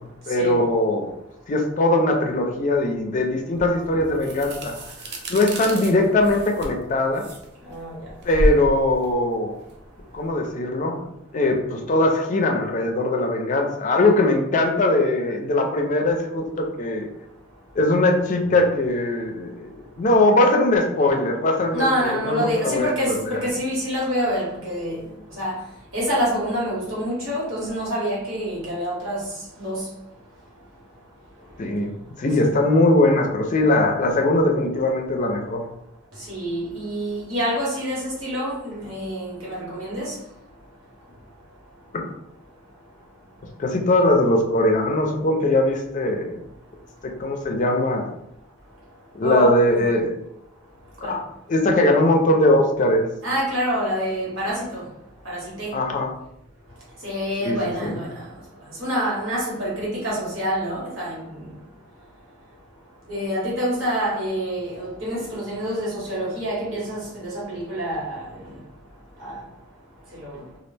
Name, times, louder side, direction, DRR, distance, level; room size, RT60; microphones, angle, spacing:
voice 1, 0.3-1.1 1.5-4.8 5.3-7.3 8.2-9.6 10.1-17.1 17.8-23.4 31.6-35.6 41.9-42.1 43.6-46.4 47.0-48.1 49.1-50.2 51.1-51.2 51.5-53.1 55.7-56.1 57.4-58.0, left 1 dB, 40° left, 0.4 m, -21 dB
sound 1, 3.6-10.3, right 1 dB, 55° right, 0.5 m, -30 dB
voice 2, 7.6-8.1 21.7-25.6 25.9-29.9 36.2-40.2 49.2-49.6 51.0-51.2 53.2-54.9 55.2-55.8 57.0-58.3 58.7-61.5 63.1-68.5 69.2-69.4 70.1-70.4, equal, 85° right, 1.3 m, -27 dB
2.3 x 2.1 x 3.2 m
head